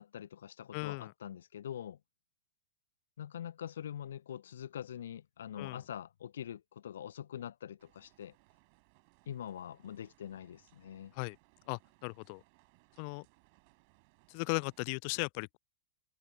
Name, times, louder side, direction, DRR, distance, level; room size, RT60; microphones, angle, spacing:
voice 1, 0.0-2.0 3.2-8.3 9.3-11.1, left 10 dB, 65° left, 1.0 m, -44 dB
voice 2, 0.7-1.1 5.6-5.8 11.1-11.4 11.7-12.4 13.0-13.2 14.3-15.6, left 39 dB, 45° left, 0.5 m, -37 dB
sound 1, 7.8-14.8, right 33 dB, 45° right, 4.4 m, -68 dB
figure-of-eight pair, 90°, 0 cm